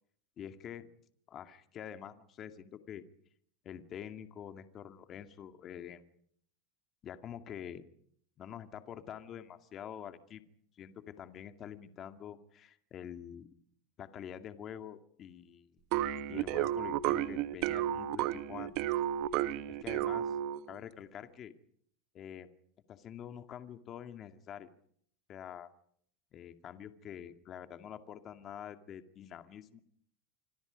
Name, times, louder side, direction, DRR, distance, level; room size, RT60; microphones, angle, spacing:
voice 1, 0.4-0.9 1.3-3.0 3.6-6.1 7.0-7.9 8.4-10.4 10.8-13.5 14.0-15.8 16.3-18.7 19.7-20.4 20.7-21.5 22.1-22.5 22.9-24.7 25.3-25.7 26.3-29.8, left 9 dB, 35° left, 9 dB, 2.1 m, -46 dB
sound 1, 15.9-20.7, right 12 dB, 55° right, 1.2 m, -32 dB
27.0 x 26.0 x 5.2 m, 0.64 s
supercardioid pair, 125°, 0 cm